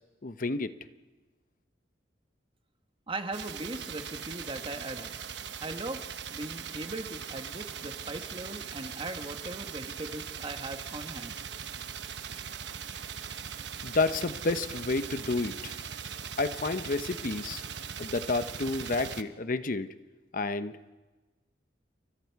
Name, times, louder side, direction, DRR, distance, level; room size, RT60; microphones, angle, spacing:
voice 1, 0.2-0.7 13.8-15.8 16.4-17.6 18.0-19.9 20.3-20.7, left 3 dB, 50° left, 11 dB, 0.9 m, -30 dB
voice 2, 3.1-5.1 5.6-6.0 6.3-11.4, right 2 dB, 30° right, 6 dB, 1.4 m, -39 dB
sound 1, 3.3-19.2, right 7 dB, 75° right, 1.0 m, -40 dB
29.0 x 24.5 x 4.7 m, 1.2 s
head